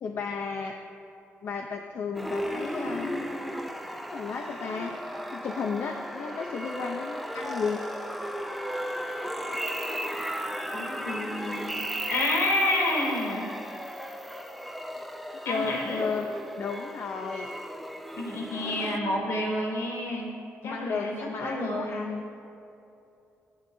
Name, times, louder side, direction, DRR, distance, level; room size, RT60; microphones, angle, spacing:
voice 1, 0.0-0.7 1.4-3.2 4.1-4.9 5.3-7.8 15.4-16.3 16.6-17.5 20.6-22.2, left 5 dB, 60° left, 3 dB, 0.7 m, -33 dB
sound 1, 2.1-19.0, equal, ahead, 0.7 m, -35 dB
voice 2, 10.7-11.8 12.1-13.4 15.5-16.1 18.2-20.3 20.6-21.1 21.4-22.1, left 1 dB, 80° left, -3 dB, 3.6 m, -29 dB
26.0 x 9.5 x 2.8 m, 2.7 s
cardioid pair, 145°, 5 cm